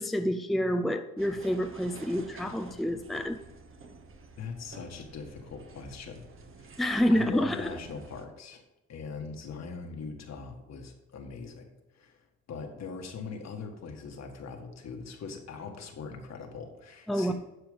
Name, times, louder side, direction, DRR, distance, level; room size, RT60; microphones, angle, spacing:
voice 1, 0.0-3.4 6.8-7.8 17.1-17.3, equal, ahead, 7 dB, 0.5 m, -28 dB
sound 1, 1.2-8.3, right 3 dB, 45° right, 1.2 m, -50 dB
voice 2, 4.4-6.3 6.6-6.7 7.1-8.6 8.9-11.7 11.9-17.3, left 5 dB, 60° left, 4 dB, 1.7 m, -41 dB
11.5 x 4.9 x 5.2 m, 1.0 s
cardioid pair, 90°, 30 cm